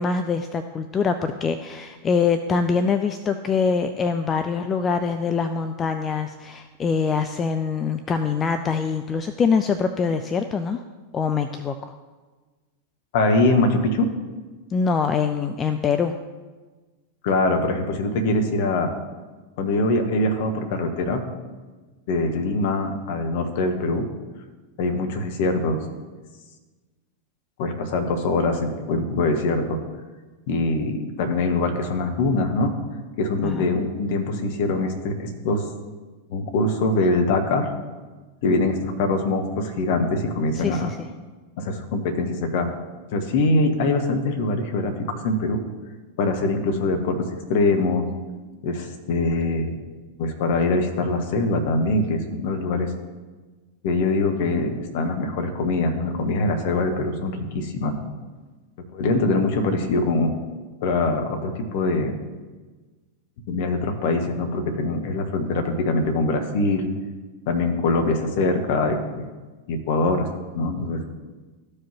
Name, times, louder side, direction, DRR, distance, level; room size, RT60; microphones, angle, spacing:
voice 1, 0.0-10.8 11.1-11.9 14.7-16.2 33.4-33.7 40.6-41.0, left 5 dB, 25° left, 8 dB, 0.4 m, -24 dB
voice 2, 13.1-14.1 17.2-18.9 19.6-21.2 22.1-24.1 24.8-25.8 27.6-29.8 30.5-32.7 33.2-35.6 36.3-37.7 38.4-40.9 41.6-42.7 43.1-44.9 45.2-45.6 46.2-47.2 47.5-48.1 48.6-49.7 50.2-52.9 53.8-58.0 58.9-60.3 60.8-62.2 63.5-66.9 67.5-69.3 69.7-71.0, left 2 dB, 50° left, 5 dB, 1.0 m, -23 dB
13.5 x 4.9 x 2.9 m, 1.3 s
figure-of-eight pair, 90°, 0 cm